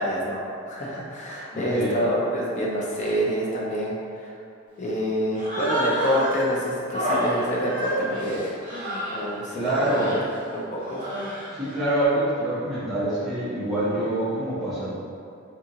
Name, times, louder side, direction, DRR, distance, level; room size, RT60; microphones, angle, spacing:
voice 1, 0.0-4.3 4.8-8.6 9.0-10.2 10.5-11.0, equal, 35° left, -4 dB, 0.5 m, -27 dB
voice 2, 1.5-2.0 9.5-10.2 11.5-14.9, right 1 dB, ahead, -15 dB, 1.1 m, -25 dB
Human voice, 5.3-6.5 6.9-9.2 9.6-10.2 10.8-11.6, right 1 dB, 40° right, 0.8 m, -29 dB
2.6 x 2.5 x 2.7 m, 2.4 s
head